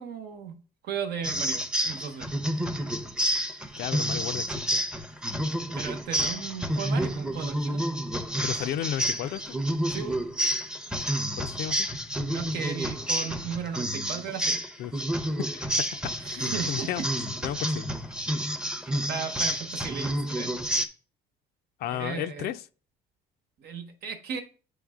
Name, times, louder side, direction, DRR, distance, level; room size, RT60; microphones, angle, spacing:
voice 1, 0.0-2.3 5.7-7.8 9.9-10.2 12.3-14.6 16.2-17.0 18.9-20.6 21.9-22.5 23.6-24.4, right 7 dB, 75° right, 1.1 m, -36 dB
sound 1, 1.2-20.9, equal, 5° right, 0.6 m, -29 dB
voice 2, 3.8-4.8 8.4-9.6 11.4-11.9 14.8-14.9 15.5-16.0 16.4-17.9 21.8-22.6, left 11 dB, 70° left, 0.4 m, -34 dB
8.6 x 3.3 x 3.6 m
cardioid pair, 110°, 17 cm